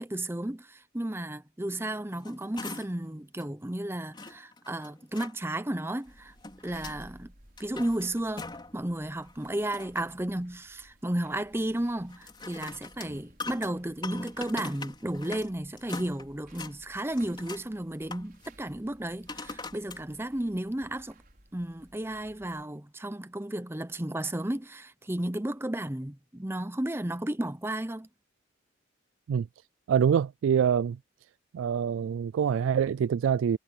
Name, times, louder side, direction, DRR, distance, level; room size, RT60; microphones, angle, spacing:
voice 1, 0.0-6.3 6.6-7.3 7.6-21.2 21.5-28.1, right 1 dB, 10° right, 0.7 m, -33 dB
sound 1, 2.0-3.1 3.4-3.5 4.1-5.3 6.1-7.0 7.4-8.8 9.2-10.2 12.1-15.5 15.8-16.7 17.1-17.7 18.1-18.5 19.3-20.0 20.6-20.7, left 3 dB, 25° left, 5.3 m, -42 dB
sound 2, 6.0-22.6, right 1 dB, 45° right, 6.1 m, -57 dB
voice 2, 29.9-31.0 31.5-33.6, right 8 dB, 85° right, 0.3 m, -25 dB
head